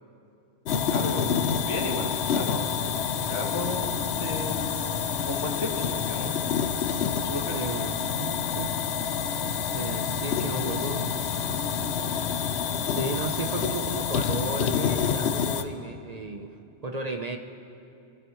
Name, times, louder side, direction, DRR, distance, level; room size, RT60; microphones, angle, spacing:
sound 1, 0.7-15.6, left 7 dB, 70° left, 0.9 m, -28 dB
voice 1, 0.9-1.3 1.6-2.8 3.3-3.9 4.2-4.6 5.0-6.3 7.1-7.6 10.5-10.7, left 2 dB, 85° left, -1 dB, 2.2 m, -33 dB
voice 2, 2.6-3.0 7.5-7.9 8.2-8.7 9.7-11.1 12.9-16.5 16.8-17.4, right 3 dB, 40° right, 4 dB, 0.7 m, -34 dB
24.5 x 15.5 x 3.1 m, 2.6 s
omnidirectional pair, 1.2 m